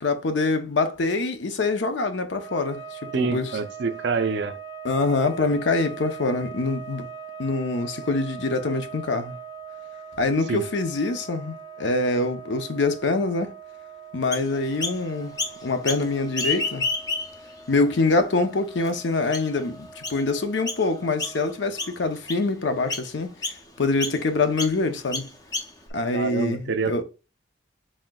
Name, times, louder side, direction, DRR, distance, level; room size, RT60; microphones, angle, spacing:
voice 1, 0.0-3.6 4.8-7.1 7.4-9.4 10.2-13.6 14.1-15.3 15.6-16.8 17.7-23.5 23.8-25.3 25.9-27.0, left 3 dB, 65° left, 0.6 m, -25 dB
sound 1, 2.2-21.9, right 6 dB, 85° left, 2.4 m, -42 dB
voice 2, 3.1-4.6 10.5-10.6 26.1-27.0, right 4 dB, 65° right, 0.5 m, -26 dB
Chirp tweet, 14.3-15.0 15.4-16.0 16.3-17.5 18.1-18.2 18.8-18.9 19.3-19.6 20.0-20.2 20.7-20.9 21.2-21.5 21.8-22.5 22.9-23.1 23.4-23.6 24.0-24.2 24.6-24.7 25.1-25.9, left 3 dB, 20° left, 0.5 m, -29 dB
4.2 x 3.7 x 2.2 m
head